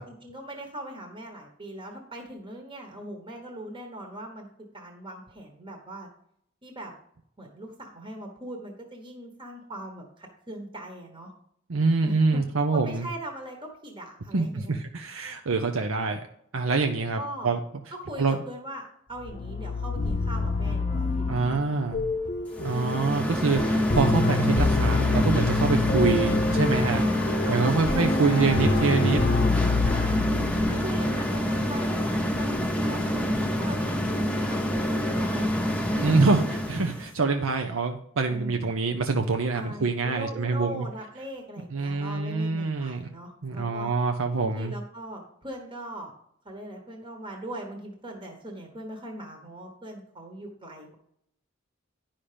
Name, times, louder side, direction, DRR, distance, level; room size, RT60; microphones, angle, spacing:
voice 1, 0.0-4.5 4.7-6.1 6.6-6.9 7.4-11.3 12.0-12.4 12.7-14.8 17.1-17.6 17.9-21.7 27.4-29.5 29.9-35.5 38.2-38.7 39.5-43.9 44.4-46.1 46.4-50.9, right 1 dB, 25° right, 2 dB, 1.3 m, -40 dB
voice 2, 11.7-13.1 14.3-16.2 16.5-17.6 18.2-18.4 21.3-22.0 22.6-27.0 27.5-29.2 35.9-36.4 36.7-40.9 41.7-43.1 43.4-44.7, right 4 dB, 85° right, 5 dB, 0.7 m, -25 dB
sound 1, 19.2-31.2, left 3 dB, 35° left, 0.7 m, -27 dB
sound 2, 22.5-37.1, equal, 5° left, 0.9 m, -27 dB
10.0 x 5.7 x 5.0 m, 0.70 s
head